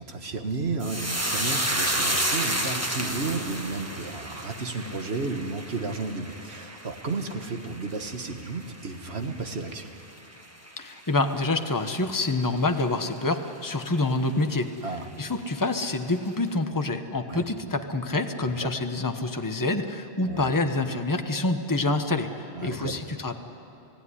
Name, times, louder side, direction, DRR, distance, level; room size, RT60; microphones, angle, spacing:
voice 1, 0.0-9.9 14.8-15.1 17.3-17.4 18.4-18.7 20.2-20.5 22.6-23.0, right 3 dB, 70° right, 5 dB, 1.7 m, -33 dB
sound 1, 0.8-9.4 9.7-10.4 10.7-10.9, right 1 dB, 15° right, 1.7 m, -31 dB
voice 2, 10.8-23.4, left 2 dB, 20° left, 6 dB, 1.1 m, -27 dB
29.0 x 17.5 x 10.0 m, 2.8 s
omnidirectional pair, 1.1 m